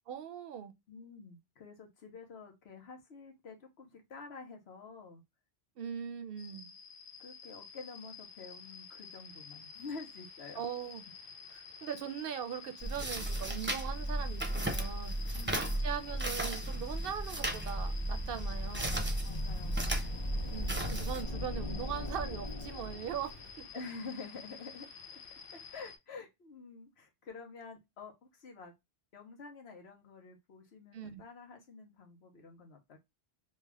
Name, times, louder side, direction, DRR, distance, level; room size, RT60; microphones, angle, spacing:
voice 1, 0.1-0.7 5.8-6.7 10.6-11.0 11.5-18.9 20.5-23.3 30.9-31.2, right 8 dB, 70° right, 0.7 m, -40 dB
voice 2, 0.9-5.2 7.2-10.6 15.3-16.0 19.2-20.1 23.7-25.2 25.5-28.7 29.1-33.0, left 4 dB, 90° left, 1.2 m, -49 dB
sound 1, 6.4-26.0, left 6 dB, 65° left, 0.8 m, -50 dB
sound 2, 12.8-21.2, right 1 dB, 15° right, 0.6 m, -35 dB
sound 3, 17.4-23.7, left 2 dB, 35° left, 0.7 m, -41 dB
3.3 x 2.4 x 3.3 m
omnidirectional pair, 1.1 m